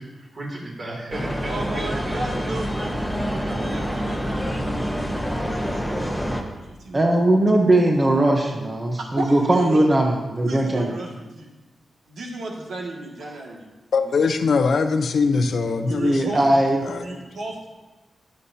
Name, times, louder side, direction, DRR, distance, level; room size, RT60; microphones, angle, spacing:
voice 1, 0.0-2.2 3.7-4.0, right 2 dB, 40° right, -2 dB, 2.8 m, -35 dB
sound 1, 1.1-6.4, equal, ahead, 1.0 m, -27 dB
voice 2, 1.4-5.0 5.4-5.9 6.2-7.1 9.2-9.9 10.4-11.5 12.1-14.5 15.8-16.4 16.9-17.7, right 2 dB, 90° right, -1 dB, 2.0 m, -35 dB
voice 3, 6.9-10.9 16.0-16.8, right 1 dB, 20° right, 1 dB, 0.9 m, -19 dB
voice 4, 13.9-16.2 16.8-17.2, left 4 dB, 65° left, 8 dB, 0.7 m, -22 dB
21.0 x 7.2 x 2.8 m, 1.2 s
wide cardioid pair, 180°, 0 cm